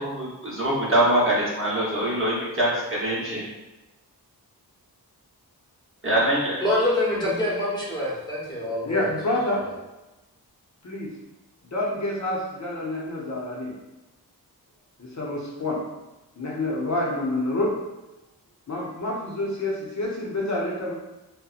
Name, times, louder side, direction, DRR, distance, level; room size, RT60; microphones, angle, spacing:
voice 1, 0.0-3.4 6.0-6.6, right 1 dB, 35° right, -6 dB, 0.9 m, -23 dB
voice 2, 6.6-9.1, left 1 dB, 10° left, -6 dB, 0.9 m, -25 dB
voice 3, 8.8-9.6 10.8-11.1 11.6-13.7 15.0-15.8 16.4-17.7 18.7-20.9, left 1 dB, 45° left, -4 dB, 0.6 m, -28 dB
2.7 x 2.1 x 2.4 m, 1.0 s
cardioid pair, 55°, 39 cm